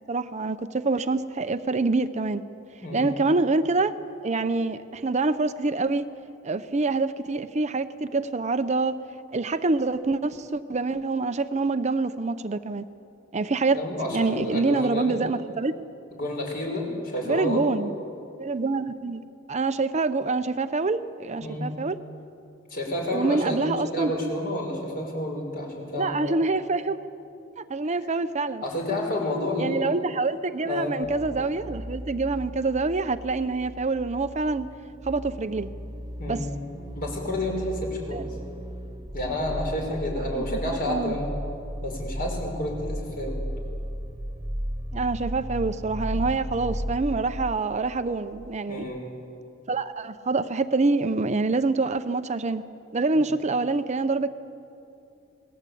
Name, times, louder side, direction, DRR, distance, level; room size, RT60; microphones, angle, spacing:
voice 1, 0.0-2.4 2.9-3.9 4.2-6.0 6.4-9.0 9.3-12.8 13.3-13.8 14.1-15.8 17.2-17.9 18.4-19.2 19.5-22.0 23.1-24.1 25.9-27.0 27.6-28.6 29.6-34.7 35.0-35.7 36.3-36.5 38.1-38.2 40.3-41.1 44.9-48.8 49.7-52.6 52.9-54.3, right 3 dB, 35° right, 11 dB, 0.6 m, -26 dB
voice 2, 2.8-3.2 13.5-15.2 16.1-17.6 21.4-21.7 22.7-26.4 28.6-29.9 30.6-31.0 36.2-36.5 37.0-38.3 39.1-41.3 41.8-43.4 48.7-49.1, left 1 dB, 45° left, 1 dB, 5.9 m, -30 dB
sound 1, 31.0-48.5 48.8-48.9, equal, 20° right, 1.6 m, -35 dB
28.5 x 20.0 x 8.5 m, 2.7 s
head